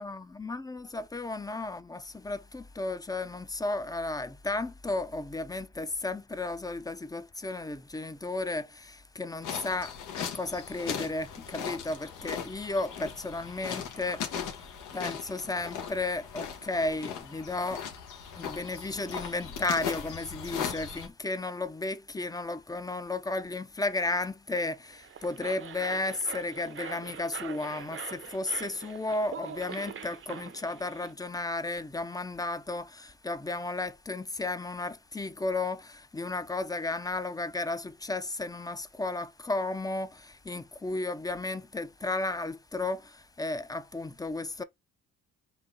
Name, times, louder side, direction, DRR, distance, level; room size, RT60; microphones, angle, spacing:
voice 1, 0.0-14.7 14.9-17.8 18.4-44.6, left 2 dB, 10° left, 0.5 m, -34 dB
sound 1, 9.4-21.1, left 8 dB, 85° left, 1.3 m, -38 dB
sound 2, 24.9-31.1, right 8 dB, 45° right, 0.7 m, -43 dB
4.0 x 2.8 x 3.9 m
cardioid pair, 90°, 30 cm